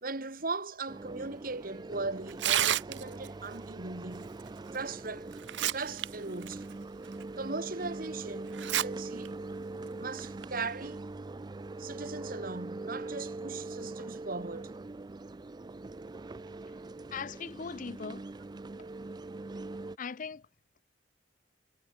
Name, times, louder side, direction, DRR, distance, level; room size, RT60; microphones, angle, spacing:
voice 1, 0.0-4.3 4.7-5.3 5.7-6.7 7.4-9.3 10.0-11.0 11.8-14.7 18.8-18.9, right 3 dB, 50° right, 2.2 m, -38 dB
sound 1, 0.9-20.0, right 2 dB, 25° right, 0.4 m, -42 dB
Tearing, 2.3-3.3 4.7-4.8 5.3-6.1 6.4-6.5 7.2-7.3 8.5-8.8 9.2-9.3 10.2-10.4, right 11 dB, 80° right, 0.7 m, -29 dB
voice 2, 17.1-18.3 20.0-20.4, left 5 dB, 45° left, 0.5 m, -39 dB
head